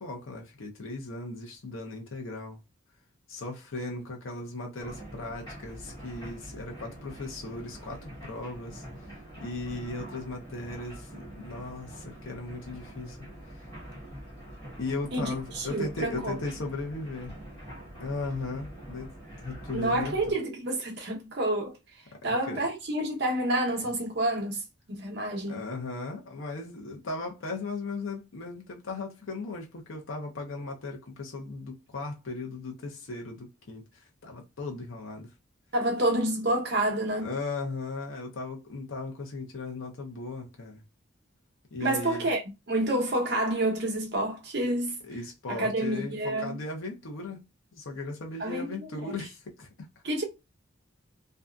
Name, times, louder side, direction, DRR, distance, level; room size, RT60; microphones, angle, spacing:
voice 1, 0.0-2.6 3.3-9.1 9.4-13.2 14.8-17.3 18.0-19.1 19.4-20.4 22.2-22.7 25.5-35.3 37.2-40.8 41.7-42.3 45.0-47.5 47.7-49.9, left 3 dB, 75° left, 0.6 m, -37 dB
sound 1, 4.8-20.3, equal, 20° left, 1.1 m, -45 dB
voice 2, 15.1-16.4 19.7-21.7 22.2-24.6 24.9-25.6 35.7-37.4 41.8-42.4 42.7-45.0 45.5-46.6 48.4-49.2 50.0-50.2, right 1 dB, 55° right, 0.8 m, -28 dB
2.6 x 2.3 x 2.2 m
head